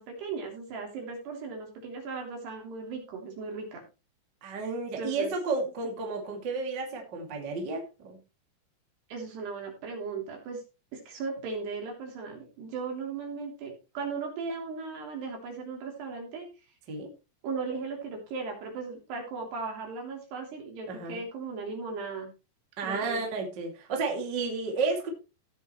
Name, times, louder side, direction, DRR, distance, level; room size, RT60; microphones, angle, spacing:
voice 1, 0.0-3.8 5.0-5.3 9.1-10.6 10.9-16.5 17.4-22.3 22.8-23.2, right 4 dB, 70° right, 1 dB, 5.3 m, -37 dB
voice 2, 4.4-8.2 16.9-17.1 20.9-21.2 22.8-25.1, right 4 dB, 30° right, 1 dB, 2.6 m, -32 dB
16.5 x 7.6 x 3.2 m, 0.30 s
omnidirectional pair, 5.0 m